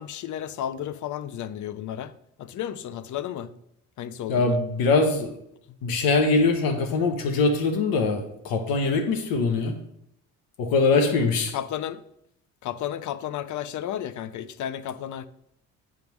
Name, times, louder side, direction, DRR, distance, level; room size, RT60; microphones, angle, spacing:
voice 1, 0.0-2.1 2.4-3.5 4.0-4.6 11.0-12.0 12.6-15.3, left 10 dB, 55° left, 0.6 m, -33 dB
voice 2, 4.3-5.4 5.8-9.8 10.6-11.6, left 3 dB, 85° left, 1.1 m, -22 dB
9.1 x 3.6 x 6.1 m
cardioid pair, 85°, 35 cm